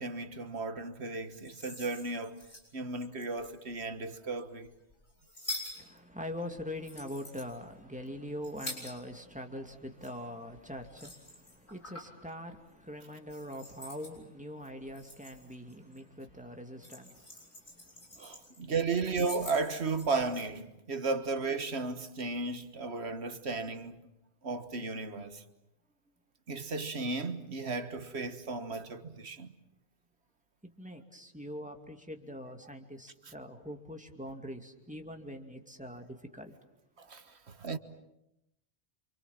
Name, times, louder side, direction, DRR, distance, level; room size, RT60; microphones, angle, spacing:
voice 1, 0.0-2.4 2.7-4.7 18.2-24.0 24.4-25.4 26.5-29.5 37.0-37.8, right 3 dB, 75° right, 1.7 m, -35 dB
sound 1, 1.2-3.8 4.4-9.4 9.6-12.2 12.6-12.9 13.3-14.2 14.7-16.0 16.3-18.6 18.9-20.4, left 1 dB, 75° left, 7.2 m, -46 dB
voice 2, 5.8-18.5 30.6-36.5, equal, 5° right, 2.5 m, -43 dB
28.5 x 26.5 x 7.4 m
omnidirectional pair, 1.1 m